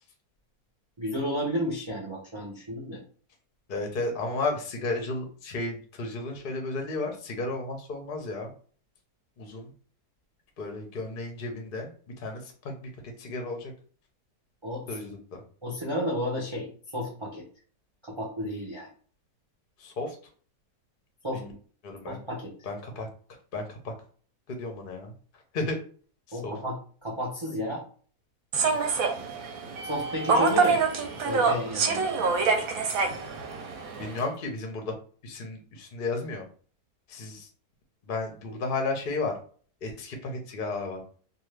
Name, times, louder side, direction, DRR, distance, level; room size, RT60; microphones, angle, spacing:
voice 1, 1.0-3.0 14.6-14.9 15.6-17.5 18.0-18.9 21.2-21.4 22.1-22.5 26.3-27.8 29.9-30.9 31.3-32.7, equal, 50° right, -3 dB, 0.3 m, -32 dB
voice 2, 3.7-8.5 9.4-9.7 10.6-11.9 12.2-12.9 13.2-13.7 14.9-15.2 19.8-20.1 21.3-21.5 21.8-22.2 22.7-23.1 23.5-23.9 24.5-25.1 25.5-25.8 26.3-26.6 34.0-34.9 35.2-36.5 37.1-37.5 38.1-39.3 39.8-41.0, left 3 dB, 50° left, 3 dB, 0.6 m, -33 dB
Human voice / Subway metro underground, 28.5-34.2, right 4 dB, 70° right, 0.9 m, -26 dB
2.7 x 2.4 x 3.2 m, 0.43 s
omnidirectional pair, 1.7 m